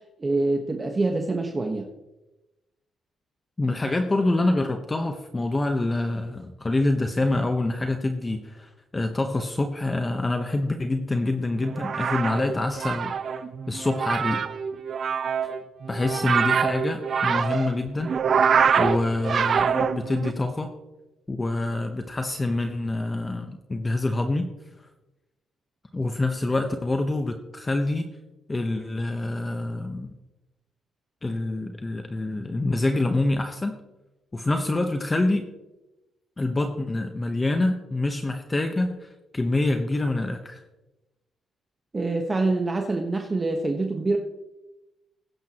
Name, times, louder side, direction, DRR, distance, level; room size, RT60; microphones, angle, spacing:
voice 1, 0.2-1.9 41.9-44.2, right 2 dB, 25° right, 3 dB, 1.2 m, -25 dB
voice 2, 3.6-13.1 13.7-14.4 15.9-18.1 18.8-20.7 21.3-24.5 25.9-28.1 28.5-30.1 31.2-33.8 34.3-35.5 36.4-40.6, left 2 dB, 20° left, 5 dB, 1.0 m, -26 dB
sound 1, 11.6-20.3, right 6 dB, 50° right, 0.8 m, -25 dB
20.0 x 10.5 x 3.0 m, 1.0 s
cardioid pair, 90°, 0 cm